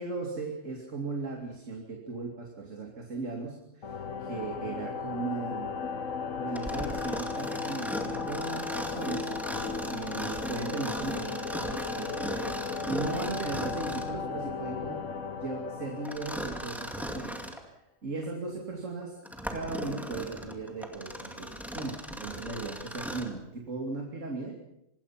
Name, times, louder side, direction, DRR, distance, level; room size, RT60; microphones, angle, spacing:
voice 1, 0.0-5.7 6.4-9.3 9.9-11.4 11.9-15.0 15.4-17.3 17.6-19.2 19.5-24.6, right 3 dB, 75° right, 1 dB, 3.0 m, -37 dB
sound 1, 3.8-17.4, left 5 dB, 85° left, 1.7 m, -36 dB
Mechanisms, 6.5-14.2 16.0-17.7 18.2-18.3 19.0-23.4, equal, ahead, 2.3 m, -38 dB
26.0 x 20.0 x 5.9 m, 0.84 s
omnidirectional pair, 1.3 m